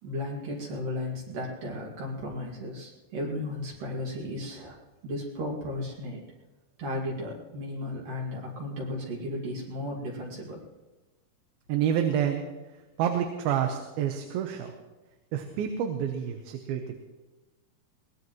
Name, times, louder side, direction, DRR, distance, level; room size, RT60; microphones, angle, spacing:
voice 1, 0.0-4.8 5.0-6.2 6.8-10.6, left 1 dB, 65° right, -3 dB, 3.8 m, -35 dB
voice 2, 11.7-12.5 13.0-14.8 15.3-16.9, right 9 dB, 90° right, 4 dB, 2.9 m, -28 dB
22.5 x 18.5 x 3.1 m, 1.2 s
omnidirectional pair, 4.2 m